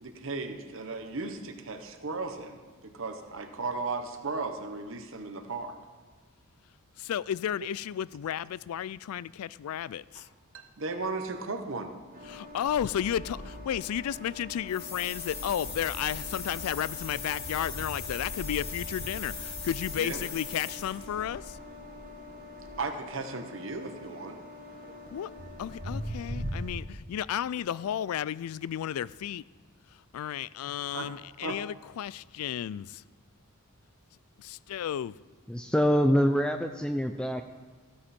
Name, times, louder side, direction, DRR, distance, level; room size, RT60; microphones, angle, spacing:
voice 1, 0.0-5.7 10.1-10.3 10.5-11.9 20.0-20.2 22.8-24.4 30.6-31.1 31.4-31.6, right 3 dB, 65° right, 1.1 m, -36 dB
voice 2, 7.0-10.3 12.3-21.6 25.1-25.3 25.6-29.4 30.1-33.0 34.4-35.1, left 10 dB, 85° left, 0.3 m, -33 dB
sound 1, 12.1-26.7, left 1 dB, 40° right, 1.4 m, -42 dB
sound 2, 14.7-21.1, left 5 dB, 50° left, 2.8 m, -40 dB
voice 3, 35.5-37.4, equal, 5° left, 0.4 m, -25 dB
15.0 x 9.6 x 4.3 m
head